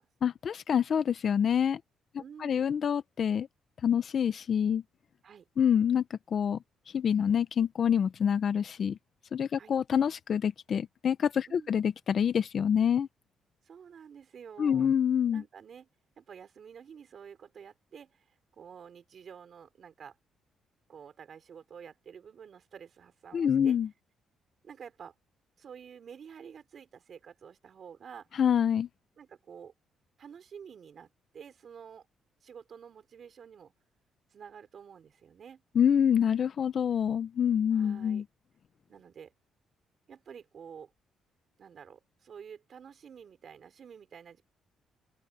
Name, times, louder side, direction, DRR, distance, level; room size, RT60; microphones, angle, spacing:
voice 1, 0.2-1.8 2.4-3.5 3.8-4.8 5.6-6.6 6.9-9.0 9.3-13.1 14.6-15.4 23.3-23.9 28.4-28.9 35.7-38.2, left 8 dB, 55° left, 1.0 m, -26 dB
voice 2, 2.2-2.7 5.2-5.5 9.6-9.7 11.5-11.7 13.6-14.9 15.3-15.9 16.2-20.2 20.9-23.8 24.6-25.1 25.6-28.3 29.2-29.7 30.2-32.1 32.4-33.7 34.3-35.6 37.7-38.2 38.9-39.3 40.1-40.9 41.6-44.4, right 7 dB, 55° right, 3.6 m, -49 dB
cardioid pair, 90°, 0 cm